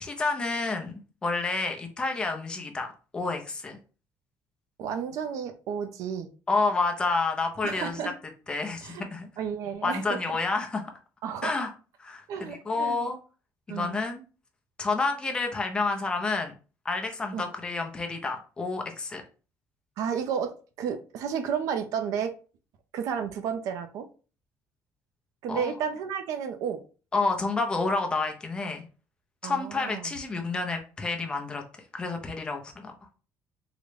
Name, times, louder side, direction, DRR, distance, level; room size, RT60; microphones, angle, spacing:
voice 1, 0.0-3.8 6.5-8.0 8.5-9.3 9.8-10.9 11.4-11.7 12.0-13.2 13.7-14.2 14.8-16.5 16.8-19.2 25.5-25.7 27.1-28.8 29.4-31.6 31.9-32.9, left 3 dB, 15° left, 3 dB, 0.5 m, -29 dB
voice 2, 4.8-6.3 7.6-8.1 8.8-9.0 9.4-10.2 11.2-11.5 12.3-13.1 13.7-14.0 17.3-17.4 20.0-22.4 22.9-24.1 25.4-26.8 29.4-30.1, right 7 dB, 70° right, 8 dB, 0.5 m, -32 dB
3.8 x 2.1 x 3.2 m, 0.36 s
cardioid pair, 170°, 6 cm